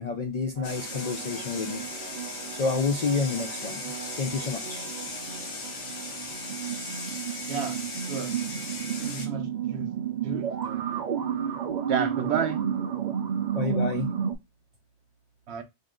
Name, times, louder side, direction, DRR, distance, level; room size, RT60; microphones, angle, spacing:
voice 1, 0.0-1.8 2.5-4.9 13.5-14.1, left 4 dB, 65° left, 0.4 m, -29 dB
sound 1, 0.6-9.3, left 3 dB, 85° left, 1.2 m, -37 dB
sound 2, 0.6-14.4, right 8 dB, 55° right, 0.6 m, -32 dB
voice 2, 7.5-7.8 8.1-8.3 9.0-9.9 10.2-10.8 11.9-12.6 15.5-15.6, right 6 dB, 70° right, 0.9 m, -31 dB
3.5 x 2.6 x 3.6 m
omnidirectional pair, 1.2 m